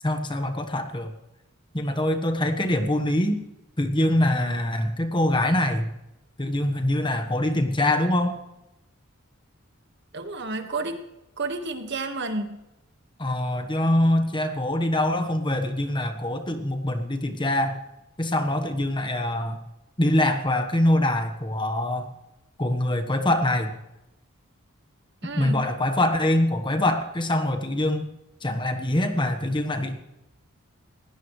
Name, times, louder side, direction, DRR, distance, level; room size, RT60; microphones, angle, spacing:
voice 1, 0.0-1.1 1.7-3.4 3.8-5.9 6.4-8.3 13.2-17.8 18.2-19.6 20.0-22.1 22.6-23.7 25.4-28.1 28.4-30.0, left 1 dB, 20° left, 6 dB, 1.3 m, -24 dB
voice 2, 10.1-11.0 11.4-12.6 25.2-25.6, right 3 dB, 55° right, 6 dB, 1.8 m, -31 dB
20.0 x 17.5 x 3.3 m, 0.92 s
head